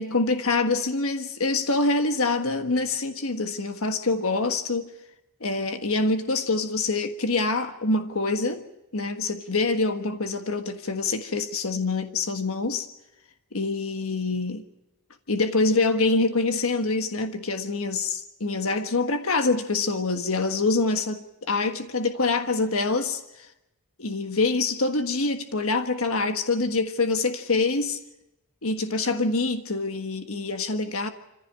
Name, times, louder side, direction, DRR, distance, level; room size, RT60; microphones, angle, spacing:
voice 1, 0.0-4.9 5.4-8.6 8.9-12.9 13.5-14.6 15.3-23.5 24.0-28.0 28.6-31.1, left 3 dB, 70° left, 1.5 m, -25 dB
25.0 x 15.5 x 8.9 m
head